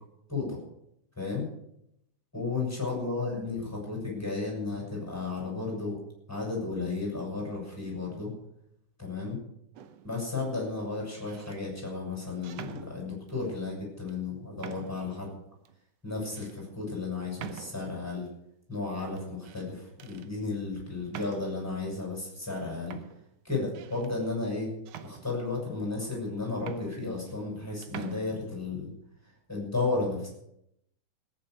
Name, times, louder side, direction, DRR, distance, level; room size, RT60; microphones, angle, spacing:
voice 1, 1.2-1.5 2.3-6.0 6.3-8.3 9.0-9.4 10.0-15.3 16.0-18.3 18.7-23.0 23.4-24.7 25.0-28.9 29.5-30.3, left 3 dB, 5° left, -2 dB, 6.5 m, -33 dB
sound 1, 9.8-10.2 11.0-11.6 12.4-13.4 14.1-14.2 14.6-15.1 15.7-15.8 16.4-16.6 17.4-18.1 19.2-19.7 20.0-20.3 21.1-21.7 22.5-22.6 22.9-24.1 24.9-25.7 26.3-26.4 26.6-27.6 27.8-28.2, right 10 dB, 70° right, 1.7 m, -45 dB
18.0 x 9.3 x 6.5 m, 0.78 s
omnidirectional pair, 3.7 m